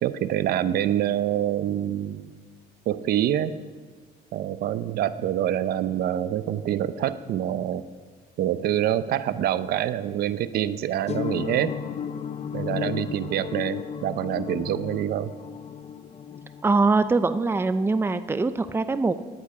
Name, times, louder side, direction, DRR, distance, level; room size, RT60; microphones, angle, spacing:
voice 1, 0.0-2.3 2.9-3.6 4.3-7.8 8.4-11.7 12.5-15.3, right 11 dB, 65° right, 13 dB, 0.7 m, -26 dB
sound 1, 11.1-17.3, left 7 dB, 40° left, 0.7 m, -34 dB
voice 2, 16.6-19.1, right 3 dB, 15° right, 11 dB, 0.6 m, -22 dB
18.5 x 11.0 x 4.9 m, 1.4 s
cardioid pair, 110°, 17 cm